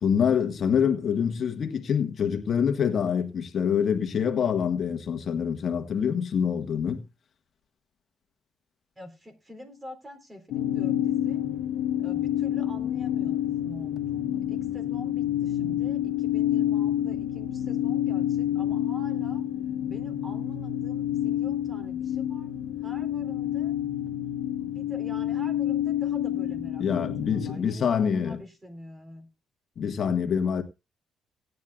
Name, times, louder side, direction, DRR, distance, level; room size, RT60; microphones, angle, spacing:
voice 1, 0.0-7.0 26.8-28.4 29.8-30.6, left 7 dB, 55° left, 1.5 m, -25 dB
voice 2, 9.0-11.4 12.0-19.4 19.9-22.5 22.8-23.8 24.6-29.3, left 1 dB, 20° right, 3.9 m, -46 dB
sound 1, 10.5-27.6, left 11 dB, 80° left, 0.9 m, -28 dB
18.5 x 9.5 x 2.4 m
cardioid pair, 90°, 0 cm